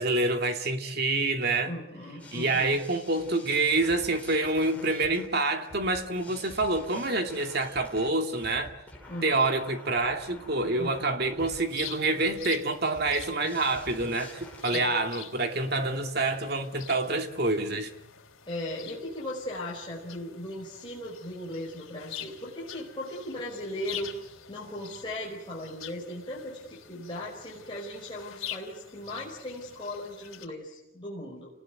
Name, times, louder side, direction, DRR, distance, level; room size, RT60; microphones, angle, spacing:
voice 1, 0.0-1.7 2.3-8.8 9.2-17.9, right 2 dB, 50° right, 5 dB, 2.6 m, -27 dB
voice 2, 1.6-2.8 9.1-9.4 10.7-11.1 14.7-14.9 18.5-24.1 24.5-31.5, left 1 dB, 25° left, -4 dB, 4.9 m, -38 dB
sound 1, 2.2-14.6, left 1 dB, 5° left, 6.0 m, -48 dB
sound 2, 11.4-30.5, left 9 dB, 85° left, 3.3 m, -46 dB
29.5 x 19.5 x 9.3 m, 0.89 s
head